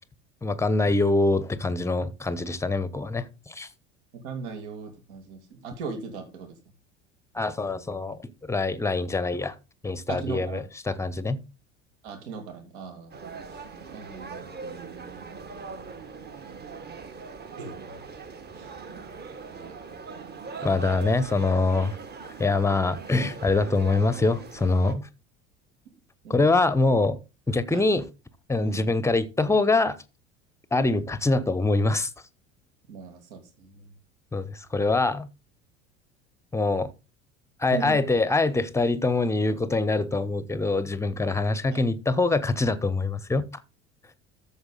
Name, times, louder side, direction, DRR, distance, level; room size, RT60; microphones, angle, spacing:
voice 1, 0.4-3.7 7.3-9.6 9.8-11.4 20.6-22.0 22.4-25.1 26.3-27.2 27.5-28.1 28.5-30.0 30.7-32.1 34.3-35.3 36.5-36.9 37.6-43.5, left 3 dB, 5° left, 0.9 m, -24 dB
voice 2, 4.2-6.5 10.1-10.6 12.0-13.2 13.5-13.6 13.9-15.3 17.6-18.0 18.6-18.7 19.5-19.8 26.2-26.4 27.7-27.9 28.6-28.9 32.9-33.9 37.7-38.0 41.7-41.8, right 5 dB, 60° right, 2.6 m, -38 dB
sound 1, 13.1-24.9, right 4 dB, 25° right, 1.6 m, -40 dB
13.0 x 6.9 x 3.9 m
figure-of-eight pair, 65°, 37 cm